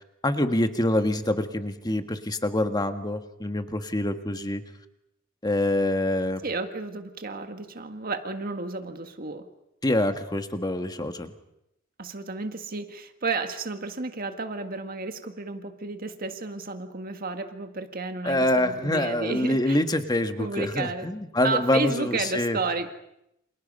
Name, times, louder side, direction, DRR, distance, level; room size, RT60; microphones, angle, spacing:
voice 1, 0.2-4.6 5.4-6.4 9.8-11.3 18.2-22.6, left 1 dB, 20° left, 7 dB, 1.6 m, -25 dB
voice 2, 6.4-9.5 12.0-19.8 20.4-21.1 21.4-22.9, right 3 dB, 45° right, 6 dB, 1.7 m, -32 dB
29.5 x 27.5 x 5.5 m, 0.82 s
head